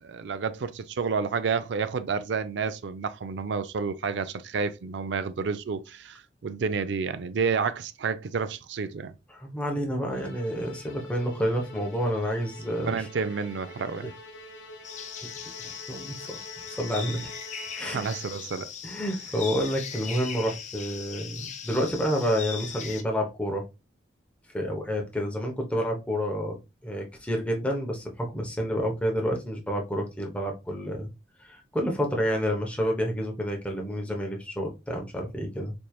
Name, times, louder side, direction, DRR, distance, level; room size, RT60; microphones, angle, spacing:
voice 1, 0.0-9.1 12.7-14.1 17.9-18.7, right 5 dB, 70° right, 0.4 m, -30 dB
voice 2, 9.3-13.1 14.0-14.1 15.6-16.4 16.7-17.3 17.8-18.0 18.8-23.7 24.5-26.6 26.8-31.1 31.4-35.7, equal, 5° left, 0.8 m, -29 dB
Musical instrument, 10.1-18.6, left 2 dB, 90° left, 0.8 m, -46 dB
sound 1, 14.8-23.0, left 7 dB, 40° left, 0.5 m, -39 dB
4.4 x 3.2 x 2.3 m
head